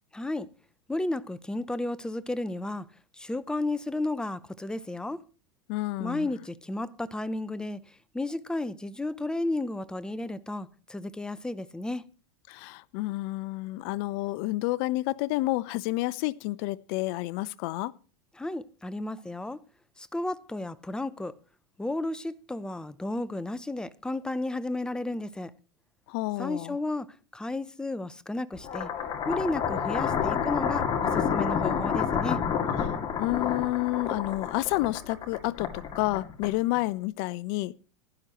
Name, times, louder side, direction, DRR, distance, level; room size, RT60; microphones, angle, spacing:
voice 1, 0.1-0.5 0.9-2.9 3.2-5.2 6.0-7.8 8.1-12.0 18.4-19.6 20.0-21.3 21.8-25.5 26.4-27.1 27.3-28.9 29.3-30.9 31.1-32.4, left 2 dB, 5° left, 0.6 m, -33 dB
voice 2, 5.7-6.3 12.5-17.9 26.1-26.8 33.2-37.8, left 19 dB, 55° left, 0.7 m, -30 dB
sound 1, 28.6-36.8, left 7 dB, 30° left, 2.2 m, -29 dB
16.0 x 11.5 x 3.0 m
supercardioid pair, 125°, 15 cm